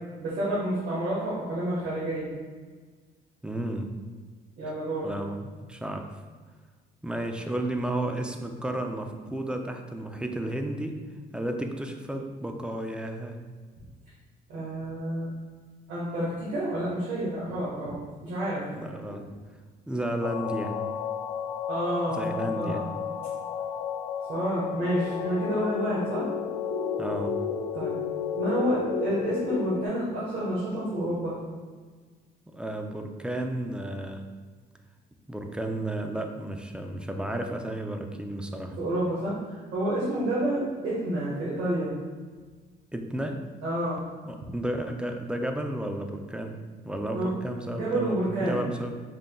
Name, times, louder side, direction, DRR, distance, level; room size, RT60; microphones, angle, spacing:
voice 1, 0.2-2.3 4.6-5.1 14.5-15.3 15.9-18.6 19.0-19.1 21.7-22.2 22.5-22.9 24.3-26.3 27.7-27.9 28.3-31.3 38.8-41.9 43.6-44.0 47.1-47.3 47.7-48.6, right 1 dB, 70° right, -8 dB, 1.3 m, -29 dB
voice 2, 3.4-3.9 5.0-6.2 7.0-11.0 11.3-13.3 18.7-19.3 19.9-20.8 22.1-22.8 27.0-27.4 32.5-34.2 35.3-38.8 42.9-43.4 44.2-46.6 46.8-48.9, right 1 dB, 5° right, 4 dB, 0.4 m, -32 dB
sound 1, 20.2-29.9, left 7 dB, 85° left, 0.4 m, -32 dB
5.4 x 3.7 x 2.3 m, 1.5 s
cardioid pair, 110°, 17 cm